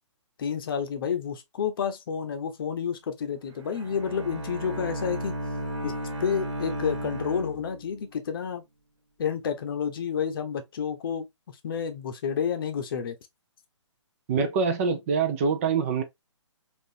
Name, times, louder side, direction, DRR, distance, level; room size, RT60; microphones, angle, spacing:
voice 1, 0.4-5.4 5.8-5.9 6.2-8.6 9.2-13.2, left 7 dB, 45° left, 0.7 m, -30 dB
Bowed string instrument, 3.5-8.2, right 1 dB, 70° right, 1.2 m, -34 dB
voice 2, 14.3-16.0, right 5 dB, 30° right, 0.5 m, -25 dB
3.8 x 2.5 x 2.6 m
figure-of-eight pair, 135°, 16 cm